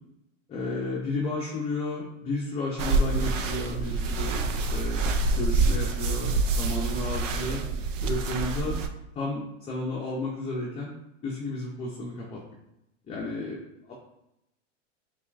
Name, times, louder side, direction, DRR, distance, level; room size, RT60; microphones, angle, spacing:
voice 1, 0.5-5.0 5.4-7.6 8.0-8.8 9.2-10.9 11.2-12.4 13.1-13.9, left 2 dB, 15° left, -4 dB, 0.6 m, -32 dB
sound 1, 2.8-8.9, right 3 dB, 85° right, 0.6 m, -26 dB
5.5 x 2.4 x 2.4 m, 0.87 s
hypercardioid pair, 125°, 37 cm